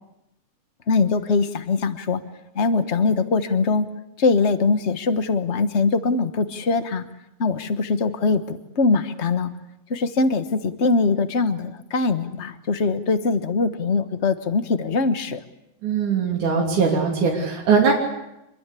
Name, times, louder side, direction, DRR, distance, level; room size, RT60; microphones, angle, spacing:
voice 1, 0.9-2.2 2.5-3.9 4.2-7.0 7.4-9.5 9.9-15.4, left 4 dB, 60° left, 10 dB, 0.6 m, -22 dB
voice 2, 15.8-17.9, right 5 dB, 85° right, -1 dB, 4.6 m, -20 dB
26.0 x 23.0 x 8.4 m, 0.89 s
omnidirectional pair, 3.4 m